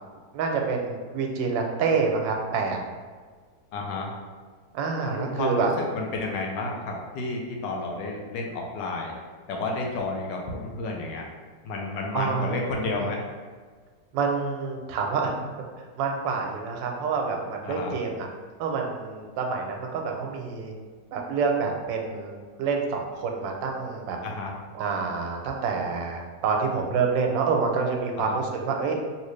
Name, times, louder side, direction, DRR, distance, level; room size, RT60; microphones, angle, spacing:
voice 1, 0.3-2.8 4.7-5.7 12.1-12.6 12.9-13.1 14.1-15.3 15.8-18.3 18.6-20.7 21.1-24.2 24.7-29.0, right 5 dB, 85° right, 2 dB, 1.3 m, -27 dB
voice 2, 3.7-4.1 5.0-5.7 5.9-9.1 9.5-11.2 11.6-13.2 17.6-17.9 24.2-24.5 28.2-28.4, left 3 dB, 80° left, 0 dB, 1.2 m, -31 dB
3.2 x 2.8 x 3.1 m, 1.5 s
omnidirectional pair, 1.9 m